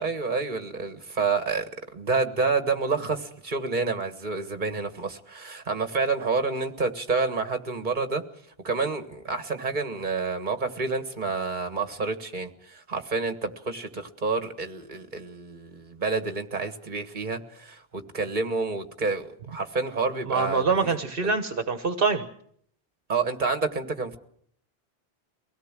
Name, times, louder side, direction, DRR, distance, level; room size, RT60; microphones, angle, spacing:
voice 1, 0.0-1.7 1.9-8.2 8.6-20.6 21.2-21.3 23.1-24.2, right 4 dB, 50° right, 8 dB, 1.7 m, -28 dB
voice 2, 20.3-22.3, right 4 dB, 65° right, 7 dB, 1.4 m, -25 dB
24.0 x 17.5 x 7.5 m, 0.66 s
omnidirectional pair, 1.0 m